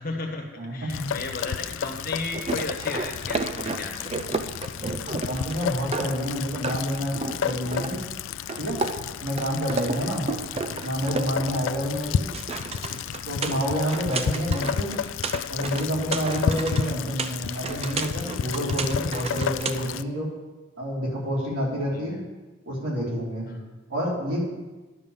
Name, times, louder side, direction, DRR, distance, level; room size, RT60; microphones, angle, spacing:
voice 1, 0.0-4.1 9.8-10.2 11.8-11.9 13.9-14.1 16.6-16.9 21.9-22.2 23.5-23.7, left 2 dB, 45° left, 3 dB, 1.3 m, -35 dB
voice 2, 0.6-1.1 5.0-8.0 8.6-8.8 9.2-10.3 10.8-12.3 13.2-14.9 15.5-20.3 20.8-22.2 22.7-23.5 23.9-24.4, equal, 85° right, -5 dB, 3.5 m, -28 dB
Rain, 0.9-20.0, left 8 dB, 70° left, 0.3 m, -32 dB
sound 1, 2.3-6.4 6.6-8.2 8.5-11.8 12.0-19.7, right 3 dB, 30° right, 0.4 m, -33 dB
10.5 x 5.4 x 7.0 m, 1.2 s
head